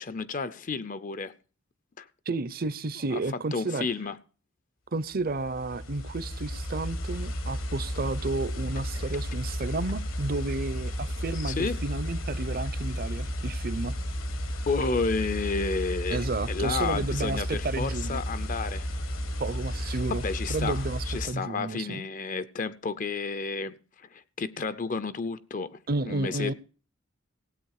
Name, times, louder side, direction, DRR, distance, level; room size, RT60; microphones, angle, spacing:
voice 1, 0.0-1.3 2.0-2.1 3.1-3.2 3.5-4.2 8.9-9.0 11.3-11.8 14.7-18.9 19.9-25.8 26.0-26.5, left 4 dB, 40° left, 0.5 m, -31 dB
voice 2, 2.3-3.9 4.9-13.9 16.1-18.2 19.4-20.2 20.5-22.1 25.9-26.5, right 3 dB, 45° right, 0.6 m, -32 dB
sound 1, 5.2-21.3, equal, 75° left, 1.6 m, -33 dB
16.5 x 8.6 x 4.8 m
head